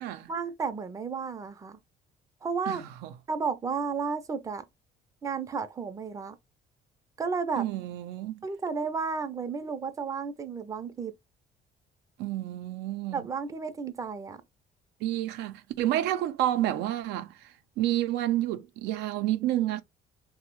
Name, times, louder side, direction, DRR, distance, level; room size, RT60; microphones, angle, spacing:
voice 1, 0.3-1.8 2.4-2.8 3.3-4.6 5.2-6.4 7.2-7.7 8.4-11.1 13.1-14.4, right 5 dB, 20° right, 0.4 m, -32 dB
voice 2, 2.7-3.1 7.6-8.4 12.2-13.2 15.0-17.3 17.8-19.8, right 13 dB, 85° right, 0.4 m, -29 dB
3.1 x 2.0 x 2.9 m
cardioid pair, 110°, 17 cm